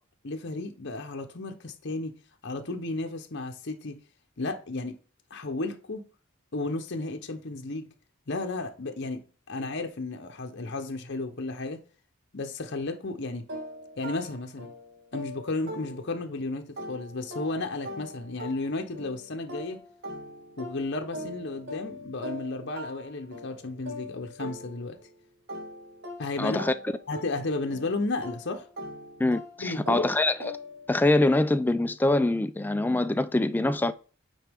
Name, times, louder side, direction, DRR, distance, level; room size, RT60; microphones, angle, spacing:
voice 1, 0.2-2.1 2.4-4.0 4.4-4.9 5.3-6.1 6.5-7.9 8.3-9.2 9.5-11.8 12.3-13.5 14.0-14.7 15.1-19.8 20.6-25.0 26.2-26.6 27.1-28.7 29.6-30.1, left 2 dB, 55° left, 0.9 m, -33 dB
sound 1, 13.5-16.4 16.8-25.1 25.5-30.9, left 1 dB, 55° right, 1.4 m, -42 dB
voice 2, 26.4-26.7 29.2-30.6 30.9-33.9, left 2 dB, 10° left, 0.3 m, -24 dB
9.2 x 4.3 x 3.5 m
head